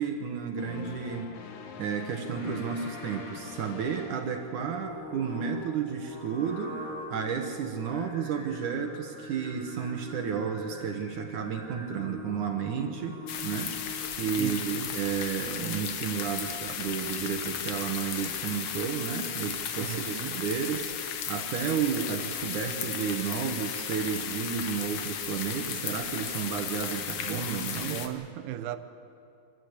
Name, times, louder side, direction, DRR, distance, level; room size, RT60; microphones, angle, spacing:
voice 1, 0.0-1.3 1.8-6.8 7.1-13.8 14.1-20.9 21.3-28.0, right 7 dB, 65° right, 4 dB, 2.3 m, -32 dB
sound 1, 0.6-5.1, left 5 dB, 90° left, 3.6 m, -45 dB
Singing, 2.2-14.4, left 1 dB, 20° left, 3.4 m, -43 dB
sound 2, 13.3-28.1, left 8 dB, 65° left, 1.7 m, -35 dB
voice 2, 14.4-14.9 19.8-20.4 27.5-28.8, right 12 dB, 85° right, 10 dB, 2.9 m, -37 dB
26.0 x 14.5 x 8.2 m, 2.6 s
omnidirectional pair, 4.5 m